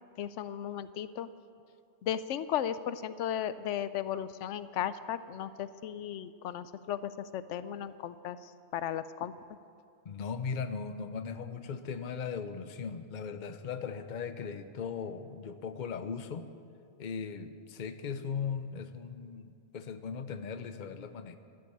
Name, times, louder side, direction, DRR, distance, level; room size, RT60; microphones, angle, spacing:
voice 1, 0.2-1.3 2.0-9.3, left 10 dB, 90° left, 14 dB, 0.9 m, -35 dB
voice 2, 10.0-16.5 17.0-21.4, left 6 dB, 45° left, 10 dB, 0.8 m, -38 dB
13.5 x 10.5 x 8.5 m, 2.3 s
omnidirectional pair, 1.2 m